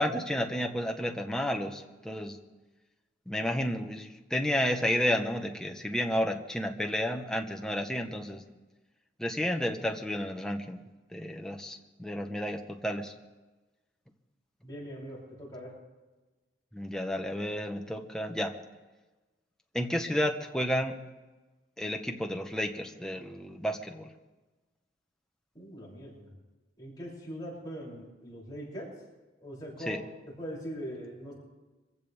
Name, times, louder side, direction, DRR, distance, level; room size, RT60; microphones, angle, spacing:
voice 1, 0.0-2.4 3.3-8.4 9.2-10.8 11.1-13.1 16.7-18.5 19.7-20.9 21.8-24.1 29.9-30.0, equal, 5° left, 3 dB, 1.2 m, -31 dB
voice 2, 14.6-15.7 25.5-26.3 26.8-28.9 29.4-30.0 30.4-31.3, equal, 20° left, -5 dB, 7.0 m, -41 dB
25.0 x 15.5 x 3.6 m, 1.2 s
head